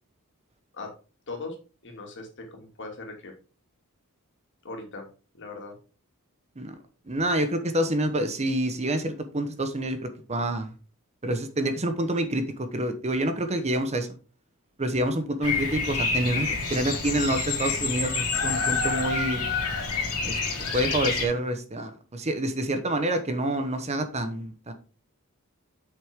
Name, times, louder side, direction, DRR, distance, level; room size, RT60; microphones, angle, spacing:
voice 1, 1.8-3.3 4.6-5.1 5.3-5.7, left 3 dB, 55° left, 1 dB, 2.5 m, -39 dB
voice 2, 7.1-10.7 11.2-14.1 14.8-19.4 20.2-20.4 20.7-24.7, right 1 dB, 30° right, 8 dB, 1.0 m, -27 dB
Bird vocalization bird call bird song, 15.4-21.3, left 4 dB, 85° left, 2.8 m, -28 dB
7.9 x 6.4 x 3.6 m, 0.36 s
head